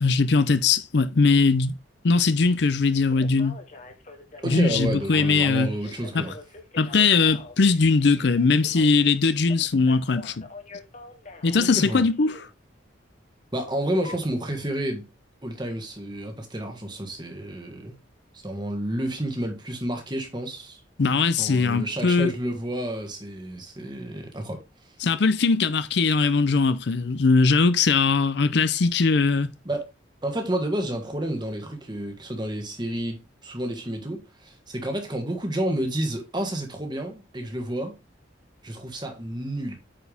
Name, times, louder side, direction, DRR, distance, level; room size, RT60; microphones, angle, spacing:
voice 1, 0.0-1.7 2.0-3.6 4.4-5.7 6.1-6.2 6.8-10.4 11.4-12.4 21.0-22.3 25.0-29.5, left 4 dB, 60° left, 0.5 m, -20 dB
Telephone, 2.9-12.5 14.0-14.2, left 3 dB, 40° left, 1.2 m, -45 dB
voice 2, 4.4-6.4 11.6-12.1 13.5-15.1 15.4-17.9 18.3-20.8 21.4-24.9 29.6-29.9 30.2-38.0 38.6-39.8, right 1 dB, 20° right, 1.6 m, -30 dB
8.7 x 4.6 x 3.4 m
head